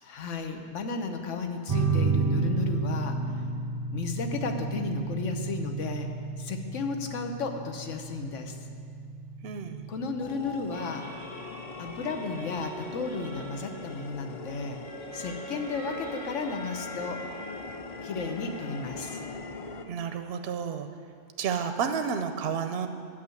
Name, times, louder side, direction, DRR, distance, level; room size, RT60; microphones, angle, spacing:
voice 1, 0.0-3.2 3.9-6.1 6.4-8.6 9.9-11.1 11.8-14.8 15.1-17.2 18.0-19.2, left 4 dB, 85° left, 5 dB, 1.2 m, -34 dB
sound 1, 1.7-12.7, right 3 dB, 20° right, 0.7 m, -32 dB
voice 2, 9.4-9.8 19.9-20.9 21.4-22.9, right 6 dB, 65° right, 7 dB, 0.7 m, -31 dB
sound 2, 10.2-19.8, left 4 dB, 50° left, 0.4 m, -42 dB
sound 3, 10.7-19.3, right 1 dB, 30° left, 1.6 m, -44 dB
9.4 x 6.0 x 7.7 m, 2.3 s
omnidirectional pair, 1.2 m